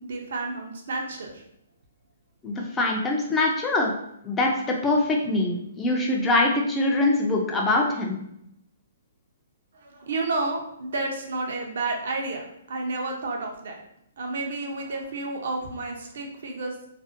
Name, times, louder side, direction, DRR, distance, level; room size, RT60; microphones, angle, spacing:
voice 1, 0.1-1.4 9.7-13.8 14.2-16.7, right 3 dB, 70° right, 1 dB, 0.5 m, -31 dB
voice 2, 2.4-3.9 4.2-8.2, left 2 dB, 15° left, 0 dB, 0.3 m, -23 dB
2.5 x 2.0 x 2.5 m, 0.78 s
hypercardioid pair, 155°, 0 cm